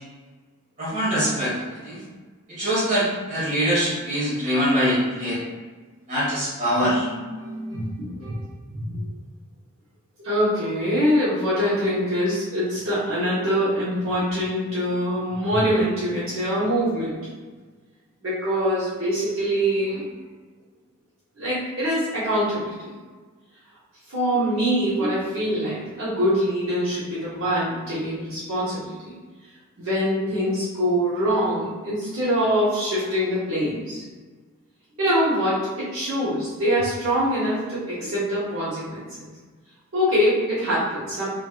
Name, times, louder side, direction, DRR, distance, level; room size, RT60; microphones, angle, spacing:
voice 1, 0.8-1.5 1.8-2.0 2.5-5.4 6.1-7.1, equal, 35° right, -9 dB, 1.5 m, -23 dB
voice 2, 6.8-8.4 8.7-9.1 10.2-17.2 18.2-20.1 21.4-22.9 24.1-29.1 29.8-34.0 35.0-39.3 39.9-41.3, equal, 60° right, -11 dB, 1.0 m, -24 dB
3.4 x 3.2 x 2.3 m, 1.4 s
head